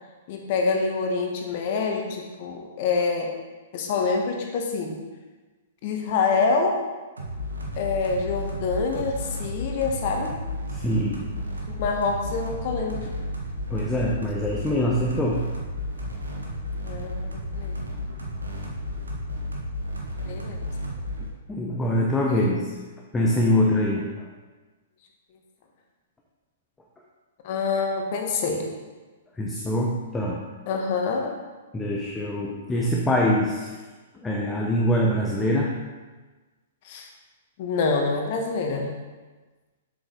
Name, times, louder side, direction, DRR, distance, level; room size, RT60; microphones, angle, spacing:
voice 1, 0.3-3.3 3.7-5.0 5.8-6.8 7.7-10.3 11.7-13.1 16.8-17.7 20.2-20.7 22.3-22.5 27.4-28.7 30.7-31.3 36.8-37.1 37.6-38.9, left 4 dB, 40° left, 2 dB, 1.4 m, -26 dB
sound 1, 7.2-21.3, left 1 dB, 70° right, 1.5 m, -33 dB
voice 2, 10.7-11.3 13.7-15.5 21.5-22.8 23.1-24.3 29.4-30.5 31.7-33.7 34.2-35.8, left 1 dB, 10° left, -2 dB, 0.8 m, -24 dB
7.9 x 7.0 x 4.0 m, 1.3 s
figure-of-eight pair, 110°, 0 cm